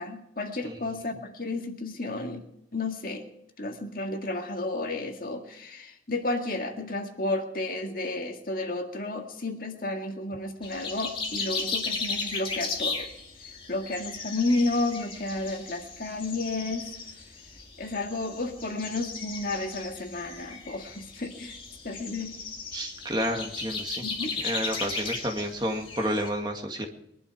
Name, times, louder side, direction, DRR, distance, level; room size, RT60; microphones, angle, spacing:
voice 1, 0.0-2.4 2.7-3.3 3.6-13.1 13.4-16.9 17.8-21.6 21.8-22.4 24.0-24.5, left 2 dB, 50° left, 4 dB, 1.9 m, -32 dB
sound 1, 10.6-26.3, left 4 dB, 30° left, 2.4 m, -36 dB
voice 2, 22.7-24.0 24.4-26.9, equal, 25° right, 3 dB, 1.9 m, -30 dB
22.5 x 11.5 x 4.8 m, 0.79 s
head